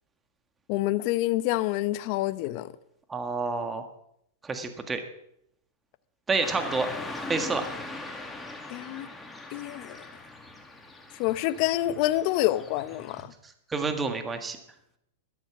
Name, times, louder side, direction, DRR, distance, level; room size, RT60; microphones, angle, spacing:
voice 1, 0.7-2.7 8.7-9.1 9.5-10.0 11.2-13.3, left 15 dB, 50° left, 14 dB, 0.7 m, -27 dB
voice 2, 3.1-3.8 4.4-5.0 6.3-6.9 7.3-7.6 13.7-14.6, right 4 dB, 15° right, 7 dB, 1.6 m, -28 dB
Car passing by / Traffic noise roadway noise, 6.4-13.2, left 2 dB, 10° left, 2.0 m, -40 dB
12.5 x 12.0 x 6.1 m, 0.76 s
hypercardioid pair, 120°, 0 cm